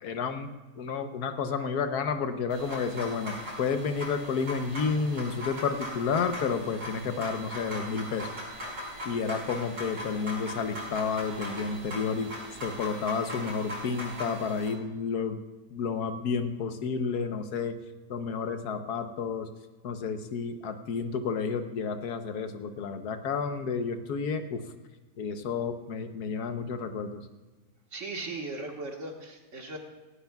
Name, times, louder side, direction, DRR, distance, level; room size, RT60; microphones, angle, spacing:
voice 1, 0.0-0.5 0.8-8.3 9.0-12.3 12.6-15.4 15.7-17.7 18.1-19.5 19.8-24.6 25.2-27.2, left 5 dB, 75° left, 8 dB, 1.4 m, -31 dB
sound 1, 2.5-14.7, equal, 75° right, 5.8 m, -39 dB
voice 2, 27.9-29.8, right 2 dB, 50° right, 2 dB, 1.8 m, -37 dB
18.0 x 16.0 x 2.3 m, 1.2 s
omnidirectional pair, 1.7 m